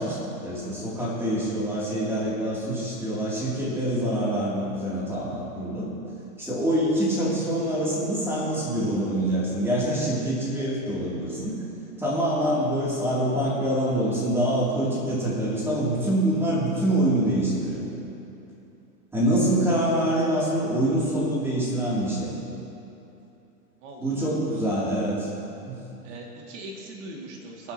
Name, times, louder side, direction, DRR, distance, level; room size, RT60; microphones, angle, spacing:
voice 1, 0.0-5.9 6.4-11.5 12.0-17.8 19.1-22.3 24.0-25.3 25.6-25.8, right 1 dB, 5° right, -7 dB, 3.0 m, -25 dB
voice 2, 23.8-24.6 26.0-27.7, right 2 dB, 45° right, -1 dB, 2.5 m, -41 dB
24.0 x 8.1 x 3.0 m, 2.8 s
hypercardioid pair, 130°, 47 cm